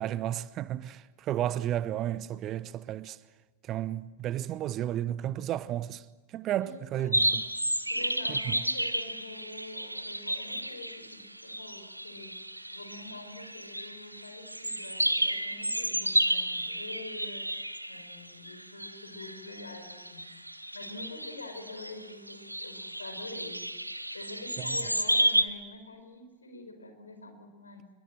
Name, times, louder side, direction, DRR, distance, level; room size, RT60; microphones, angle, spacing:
voice 1, 0.0-3.2 3.6-6.0 6.3-7.4 8.3-8.6 24.6-24.8, right 12 dB, 35° right, 0.9 m, -33 dB
voice 2, 6.6-7.5 7.9-12.3 12.7-17.5 17.8-20.3 20.7-23.6 24.1-27.9, left 2 dB, 75° left, 4.7 m, -46 dB
sound 1, 7.1-25.4, right 1 dB, 85° right, 1.1 m, -32 dB
27.0 x 22.0 x 7.8 m
figure-of-eight pair, 90°, 0 cm